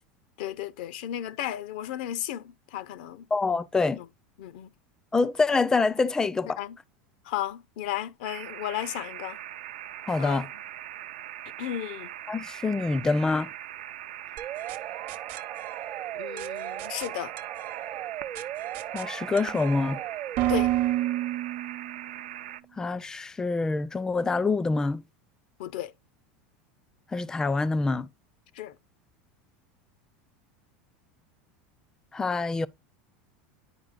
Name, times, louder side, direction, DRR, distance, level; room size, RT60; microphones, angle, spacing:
voice 1, 0.4-3.2 4.0-4.1 4.4-4.7 6.6-6.8 7.2-9.4 10.2-10.4 11.6-12.1 16.1-17.3 20.5-20.7 25.6-25.9 28.5-28.8, left 12 dB, 70° left, 0.5 m, -34 dB
voice 2, 3.3-4.0 5.1-6.6 10.1-10.5 12.3-13.5 18.9-20.0 22.8-25.0 27.1-28.1 32.1-32.7, left 3 dB, 15° left, 0.4 m, -26 dB
sound 1, 8.2-22.6, right 12 dB, 85° right, 0.4 m, -41 dB
sound 2, 14.4-22.2, right 13 dB, 55° right, 0.8 m, -32 dB
9.7 x 4.9 x 2.4 m
hypercardioid pair, 100°, 5 cm